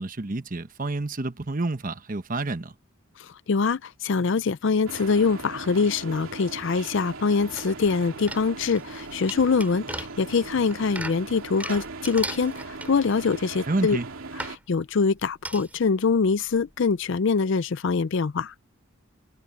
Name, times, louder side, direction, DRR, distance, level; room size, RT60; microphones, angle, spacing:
voice 1, 0.0-2.7 13.7-14.1, right 2 dB, 40° right, 1.0 m, -29 dB
voice 2, 3.2-14.0 14.5-18.5, left 5 dB, 60° left, 0.5 m, -24 dB
sound 1, 4.9-14.6, right 3 dB, 75° right, 2.5 m, -39 dB
sound 2, 7.6-7.9 8.3-13.3 13.8-13.9 14.4-14.6 15.4-15.9 16.3-16.4 16.6-16.7, right 2 dB, 5° right, 6.2 m, -37 dB
head